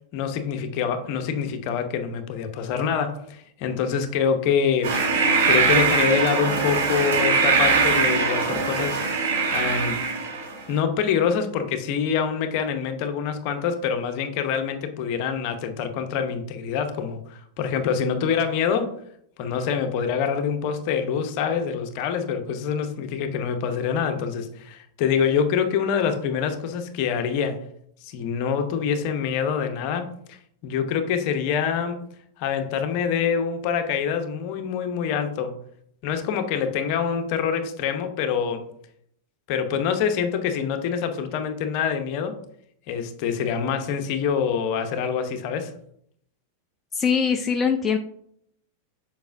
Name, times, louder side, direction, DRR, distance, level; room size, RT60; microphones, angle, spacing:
voice 1, 0.1-5.0 5.5-9.0 9.5-10.0 10.7-19.0 19.4-27.7 28.0-32.0 32.4-35.6 36.0-38.7 39.5-42.4 42.9-45.7, left 7 dB, 50° left, 7 dB, 0.8 m, -25 dB
sound 1, 4.8-10.6, right 4 dB, 60° right, 1.4 m, -22 dB
voice 2, 46.9-48.0, left 6 dB, 20° left, 6 dB, 0.4 m, -22 dB
6.9 x 5.4 x 2.6 m, 0.69 s
figure-of-eight pair, 90°, 0 cm